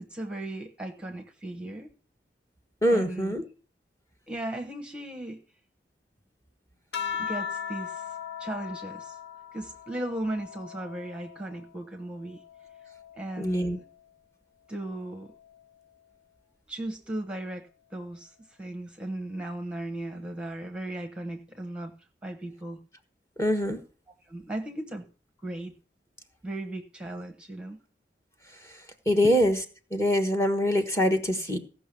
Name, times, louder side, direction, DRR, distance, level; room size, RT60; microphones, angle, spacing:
voice 1, 0.0-1.9 2.9-3.3 4.3-5.4 7.2-9.2 9.5-12.4 13.1-13.8 14.7-15.3 16.7-21.9 22.2-22.8 24.2-25.0 25.4-25.7 26.4-27.8 29.2-29.3, right 1 dB, 5° right, 5 dB, 1.2 m, -36 dB
voice 2, 2.8-3.4 13.4-13.8 23.4-23.8 29.0-29.6 29.9-31.6, equal, 15° left, 7 dB, 1.4 m, -24 dB
sound 1, 6.9-11.7 12.2-13.9 15.1-15.6, left 7 dB, 65° left, 0.9 m, -39 dB
16.0 x 6.1 x 6.8 m, 0.38 s
head